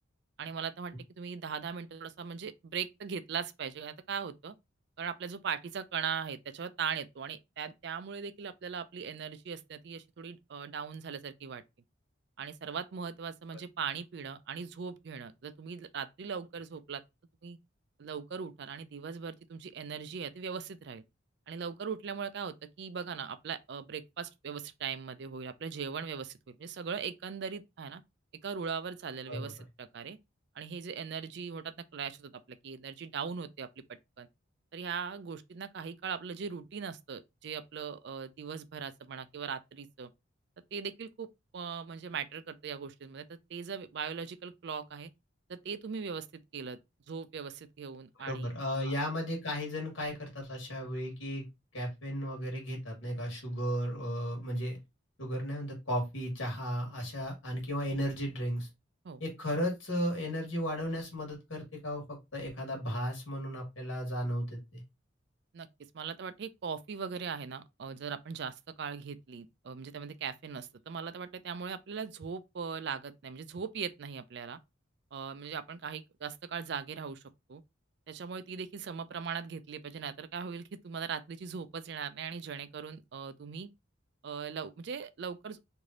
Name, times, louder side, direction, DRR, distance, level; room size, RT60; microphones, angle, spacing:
voice 1, 0.4-4.5 5.0-11.6 12.4-17.0 17.4-17.6 18.0-21.0 21.5-28.0 28.4-30.2 30.6-33.7 34.2-34.3 34.7-40.1 40.7-41.3 41.5-45.1 45.5-46.3 46.5-46.8 47.1-48.5 48.8-48.9 59.0-59.2 65.5-65.7 65.9-74.6 75.1-77.2 77.5-77.6 78.1-83.7 84.2-85.6, right 6 dB, 55° right, 0.4 m, -39 dB
voice 2, 48.2-51.4 51.7-54.8 55.2-58.7 59.2-64.8, equal, 75° left, 1.5 m, -35 dB
3.3 x 2.6 x 3.6 m
head